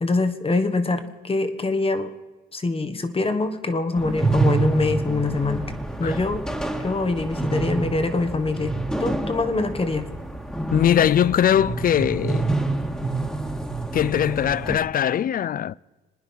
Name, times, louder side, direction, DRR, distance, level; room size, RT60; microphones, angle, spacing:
voice 1, 0.0-2.1 2.5-5.7 6.0-6.5 6.8-8.7 9.0-10.1, left 3 dB, 30° left, 1.5 m, -24 dB
sound 1, 3.9-14.8, right 2 dB, 5° left, 1.9 m, -27 dB
voice 2, 10.7-12.5 13.9-15.7, left 9 dB, 45° left, 0.4 m, -21 dB
26.0 x 9.9 x 5.6 m
cardioid pair, 90°, 20 cm